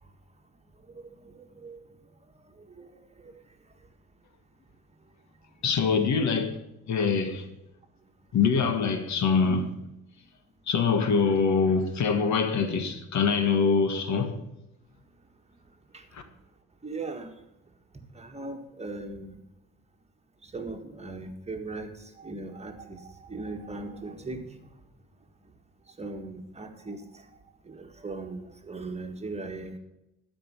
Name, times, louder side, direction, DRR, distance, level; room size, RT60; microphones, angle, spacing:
voice 1, 0.9-1.8 2.8-3.3 15.9-16.0 16.8-17.3 18.1-19.3 20.4-24.6 26.0-27.2 27.7-29.8, right 3 dB, 20° right, 1.7 m, -39 dB
voice 2, 5.6-6.6 6.9-7.5 8.3-9.8 10.7-14.4 16.1-16.2, left 5 dB, 70° left, 1.6 m, -24 dB
12.0 x 5.3 x 7.7 m
cardioid pair, 90°, 30 cm